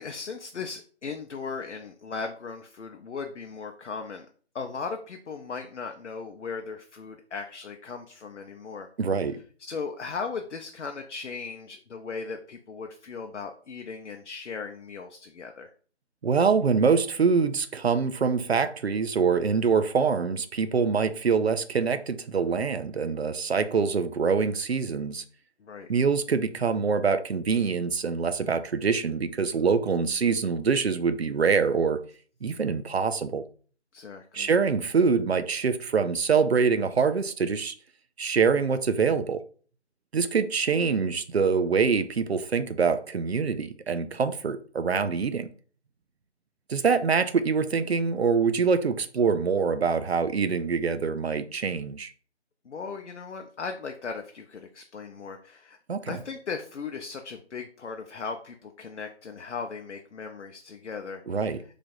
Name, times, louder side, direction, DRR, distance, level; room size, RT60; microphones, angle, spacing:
voice 1, 0.0-4.3 4.5-8.9 9.6-15.7 25.6-25.9 33.9-34.5 52.6-55.8 56.1-61.6, left 5 dB, 75° left, 0.6 m, -37 dB
voice 2, 9.0-9.4 16.2-25.2 25.9-32.0 32.4-33.4 34.3-37.7 38.2-39.4 40.1-45.5 46.7-52.1 55.9-56.2 61.3-61.6, right 5 dB, 60° right, 0.5 m, -25 dB
3.2 x 2.5 x 3.8 m
figure-of-eight pair, 175°, 35 cm